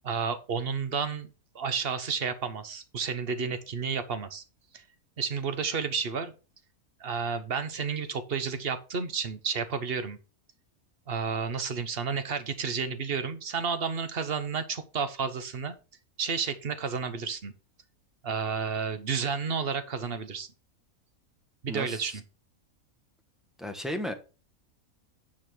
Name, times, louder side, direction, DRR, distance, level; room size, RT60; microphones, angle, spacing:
voice 1, 0.0-1.3 1.5-4.4 4.7-4.8 5.2-6.3 7.0-10.2 11.1-15.7 16.2-17.5 18.2-20.5 21.6-22.2, right 5 dB, 45° right, 11 dB, 1.2 m, -31 dB
voice 2, 21.7-22.2 23.6-24.1, equal, ahead, 3 dB, 1.1 m, -34 dB
9.7 x 4.2 x 6.1 m, 0.33 s
omnidirectional pair, 1.5 m